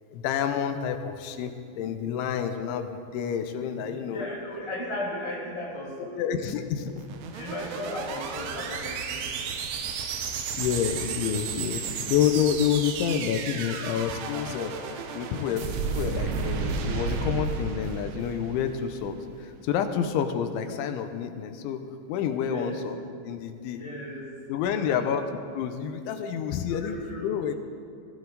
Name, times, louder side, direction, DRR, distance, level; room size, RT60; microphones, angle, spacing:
voice 1, 0.1-4.3 6.1-6.9 10.5-11.8 12.1-14.8 15.1-21.8 22.1-23.0 23.3-23.8 24.5-25.2 25.5-27.0 27.2-27.5, left 8 dB, 85° left, 7 dB, 3.1 m, -28 dB
voice 2, 3.7-6.2 7.3-9.3 22.4-22.8 23.7-24.3 24.7-25.2 26.7-27.5, left 1 dB, 10° right, -6 dB, 1.4 m, -36 dB
sound 1, 6.9-19.2, right 5 dB, 85° right, 3.6 m, -33 dB
19.5 x 16.5 x 4.0 m, 2.4 s
omnidirectional pair, 5.4 m